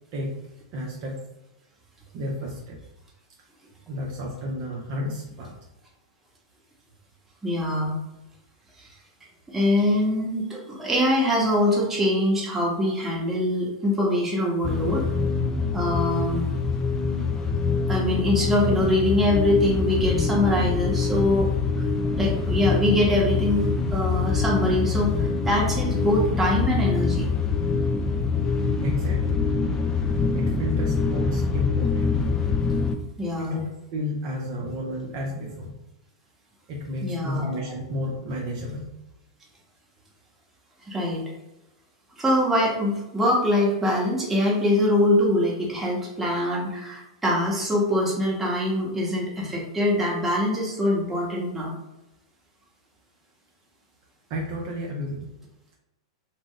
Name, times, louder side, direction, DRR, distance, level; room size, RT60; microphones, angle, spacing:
voice 1, 0.7-1.2 2.1-2.8 3.9-5.5 28.8-29.5 30.3-32.2 33.4-35.7 36.7-38.9 54.3-55.3, equal, 50° right, -2 dB, 0.6 m, -31 dB
voice 2, 7.4-8.0 8.8-8.9 9.5-15.0 15.7-16.5 17.9-21.5 21.8-21.9 22.2-27.3 33.2-33.6 37.0-37.4 40.9-41.2 42.2-51.7, left 1 dB, 10° right, -4 dB, 1.0 m, -23 dB
sound 1, 14.6-33.0, left 4 dB, 20° left, 0.3 m, -25 dB
2.3 x 2.0 x 3.7 m, 0.94 s
hypercardioid pair, 105°, 3 cm